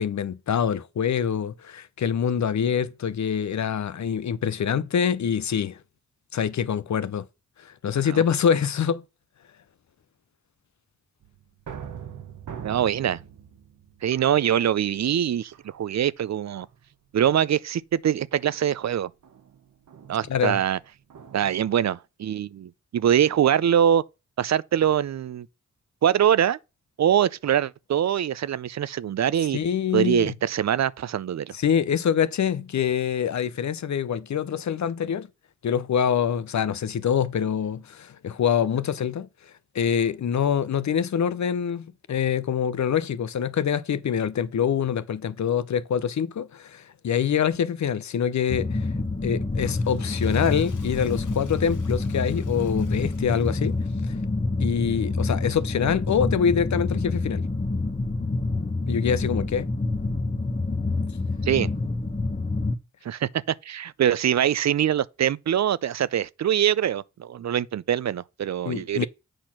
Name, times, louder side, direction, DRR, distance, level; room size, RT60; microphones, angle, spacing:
voice 1, 0.0-5.8 6.3-7.3 7.6-9.0 20.3-20.6 29.5-30.3 31.5-35.3 35.6-39.3 39.7-48.9 49.2-53.8 54.1-54.2 54.6-57.5 58.9-59.7 68.7-69.1, left 8 dB, 65° left, 0.7 m, -25 dB
sound 1, 11.2-15.0 15.5-16.1 16.5-16.9 18.4-21.8, right 8 dB, 85° right, 1.1 m, -43 dB
voice 2, 12.6-13.2 14.0-16.7 17.1-19.1 20.1-20.8 21.3-24.0 24.4-25.5 26.0-26.6 27.0-29.6 29.9-31.5 61.4-61.7 63.0-63.3 63.6-69.1, right 10 dB, 65° right, 0.5 m, -23 dB
sound 2, 48.5-62.8, left 3 dB, 25° left, 1.0 m, -27 dB
Water / Toilet flush, 49.5-54.0, left 6 dB, 85° left, 1.5 m, -50 dB
7.9 x 4.3 x 5.8 m
cardioid pair, 45°, 30 cm